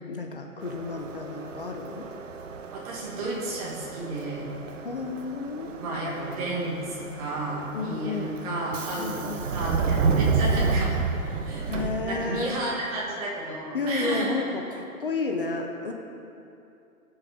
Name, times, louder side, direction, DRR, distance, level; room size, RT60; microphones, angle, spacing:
voice 1, 0.1-2.0 4.8-5.7 7.7-8.3 9.0-9.4 11.7-12.5 13.7-15.9, left 4 dB, 40° left, 3 dB, 0.6 m, -31 dB
Subway metro underground, 0.6-12.6, right 5 dB, 55° right, 0.8 m, -30 dB
voice 2, 2.7-4.5 5.8-11.0 11.4-14.5, right 2 dB, 25° right, -5 dB, 1.8 m, -32 dB
19.0 x 6.5 x 3.6 m, 2.7 s
hypercardioid pair, 170°, 45 cm